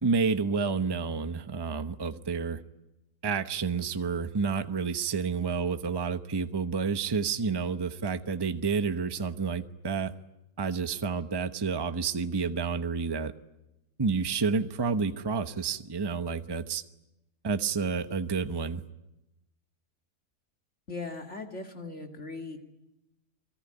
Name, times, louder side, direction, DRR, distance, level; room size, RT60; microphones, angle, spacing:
voice 1, 0.0-2.6 3.2-10.1 10.6-13.3 14.0-16.8 17.4-18.8, right 5 dB, 20° right, 9 dB, 0.8 m, -29 dB
voice 2, 20.9-22.6, left 3 dB, 50° left, 3 dB, 2.6 m, -39 dB
29.0 x 20.5 x 10.0 m, 0.92 s
omnidirectional pair, 1.6 m